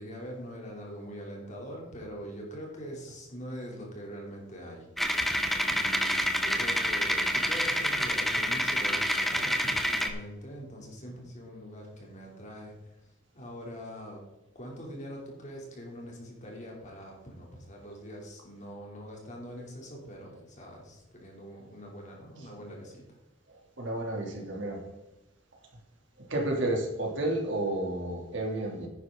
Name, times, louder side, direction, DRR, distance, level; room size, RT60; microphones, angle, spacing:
voice 1, 0.0-5.1 5.6-12.9 13.3-14.2 14.5-23.2, equal, 40° left, -1 dB, 3.1 m, -43 dB
sound 1, 5.0-10.1, equal, ahead, 0.8 m, -28 dB
voice 2, 23.8-24.8 26.2-28.9, right 1 dB, 65° right, -1 dB, 2.8 m, -31 dB
10.5 x 9.6 x 3.8 m, 0.99 s
head